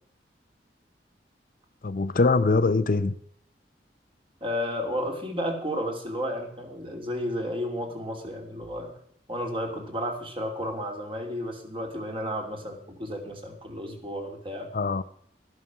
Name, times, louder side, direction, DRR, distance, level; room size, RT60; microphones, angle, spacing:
voice 1, 1.8-3.1 14.7-15.0, left 3 dB, 50° left, 0.6 m, -23 dB
voice 2, 4.4-8.9 9.3-14.7, equal, 30° right, 2.8 m, -32 dB
13.0 x 11.0 x 6.1 m
head